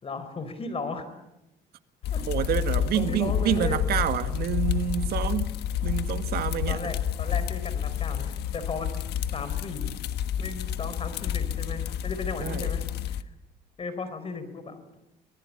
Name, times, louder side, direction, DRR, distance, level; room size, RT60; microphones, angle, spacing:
voice 1, 0.0-1.1 2.1-2.2 2.9-3.8 6.7-9.0 9.3-9.9 10.4-13.3 13.8-15.0, left 4 dB, 35° left, 4.6 m, -36 dB
sound 1, 2.0-13.2, left 9 dB, 75° left, 1.3 m, -29 dB
voice 2, 2.3-5.5 5.8-6.9 12.4-12.7, right 11 dB, 70° right, 1.8 m, -28 dB
25.5 x 19.0 x 8.8 m
cardioid pair, 110°, 17 cm